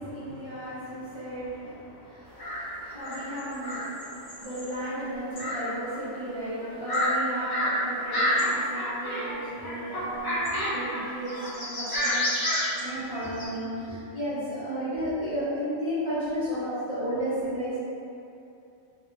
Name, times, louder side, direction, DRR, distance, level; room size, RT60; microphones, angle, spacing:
voice 1, 0.0-12.2 12.8-17.8, equal, 30° right, -14 dB, 0.6 m, -33 dB
sound 1, 2.4-2.7 3.0-4.7 5.4-5.7 5.9-6.0 6.6-7.1 7.5-7.8 8.1-9.4 9.6-11.0 11.3-13.5, left 1 dB, 35° left, 0.4 m, -29 dB
3.4 x 2.2 x 2.9 m, 2.7 s
omnidirectional pair, 1.4 m